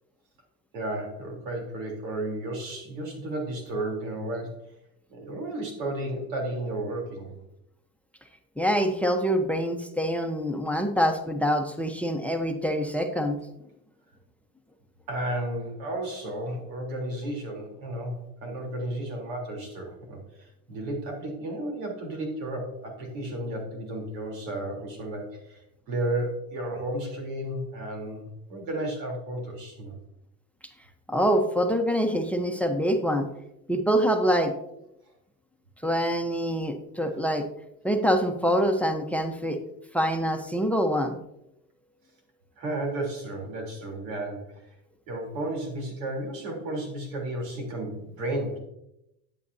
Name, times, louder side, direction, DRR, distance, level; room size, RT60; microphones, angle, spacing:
voice 1, 0.7-4.6 5.1-7.4 15.1-29.9 42.6-44.8 45.1-48.6, right 1 dB, 85° right, 0 dB, 3.5 m, -33 dB
voice 2, 8.6-13.4 31.1-33.3 33.7-34.5 35.8-37.4 37.8-39.6 39.9-41.2, equal, 5° left, 6 dB, 0.9 m, -25 dB
11.5 x 8.6 x 2.7 m, 0.83 s
supercardioid pair, 105°, 39 cm